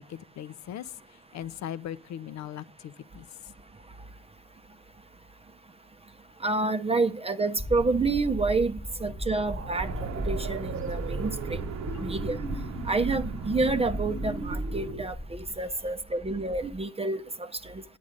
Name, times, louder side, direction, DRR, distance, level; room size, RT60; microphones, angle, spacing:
voice 1, 0.0-3.3 11.9-12.0, left 10 dB, 65° left, 0.6 m, -39 dB
voice 2, 6.4-11.6 12.0-12.4 12.8-17.2 17.6-17.8, right 3 dB, 20° right, 0.6 m, -28 dB
sound 1, 7.6-16.8, equal, 15° left, 1.3 m, -38 dB
sound 2, 9.4-15.0, right 3 dB, 45° right, 1.0 m, -36 dB
sound 3, 9.8-14.9, right 6 dB, 70° right, 0.9 m, -40 dB
9.5 x 8.5 x 5.1 m
cardioid pair, 90°, 30 cm